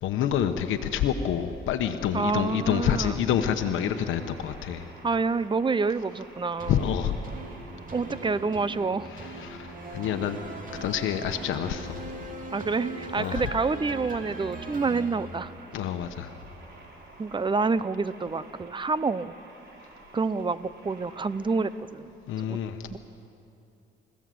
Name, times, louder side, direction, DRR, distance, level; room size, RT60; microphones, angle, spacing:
voice 1, 0.0-4.9 6.7-7.1 9.1-10.4 10.8-12.0 13.2-13.4 15.7-16.4 22.3-23.0, left 9 dB, 85° left, 7 dB, 1.1 m, -28 dB
voice 2, 2.1-3.2 5.0-6.8 7.9-9.1 12.5-15.5 17.2-19.3 20.1-22.1 22.4-22.6 22.9-23.0, right 4 dB, 25° right, 15 dB, 0.7 m, -28 dB
sound 1, 2.4-21.8, right 2 dB, 60° right, 5.6 m, -51 dB
sound 2, 6.6-16.0 16.5-16.6, right 1 dB, 40° right, 3.0 m, -40 dB
29.0 x 15.5 x 7.8 m, 2.8 s
cardioid pair, 90°, 20 cm